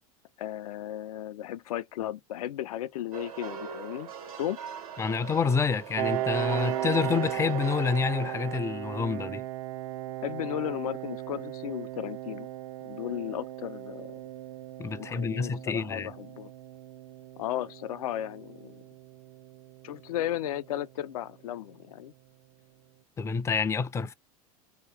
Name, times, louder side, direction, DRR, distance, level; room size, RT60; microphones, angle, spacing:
voice 1, 0.4-4.1 4.4-4.6 10.2-12.5 12.8-14.2 15.0-16.5 17.4-18.8 19.8-22.1, left 12 dB, 80° left, 0.4 m, -35 dB
sound 1, 3.1-8.6, right 7 dB, 80° right, 1.4 m, -40 dB
voice 2, 5.0-9.4 14.8-16.1 23.2-24.1, left 5 dB, 15° left, 0.4 m, -28 dB
Piano, 6.0-21.3, right 15 dB, 60° right, 0.5 m, -37 dB
2.9 x 2.3 x 3.3 m
hypercardioid pair, 90°, 19 cm